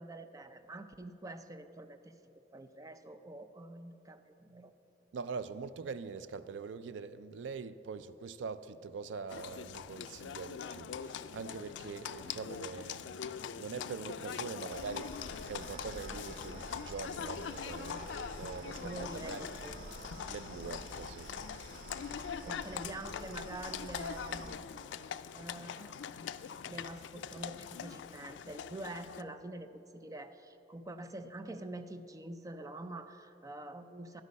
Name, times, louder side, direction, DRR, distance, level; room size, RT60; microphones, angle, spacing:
voice 1, 0.0-2.2 2.5-4.7 18.8-19.8 22.4-24.6 25.0-26.2 26.6-34.2, right 2 dB, 20° right, 9 dB, 0.4 m, -46 dB
voice 2, 5.1-18.0 18.4-19.5 20.3-21.3 22.4-22.6 22.8-22.9, right 5 dB, 85° right, 13 dB, 0.4 m, -43 dB
Livestock farm animals working animals, 9.3-29.2, left 7 dB, 80° left, 0.3 m, -43 dB
sound 1, 14.7-24.5, right 2 dB, 55° right, 0.9 m, -49 dB
11.0 x 8.3 x 5.3 m, 3.0 s
head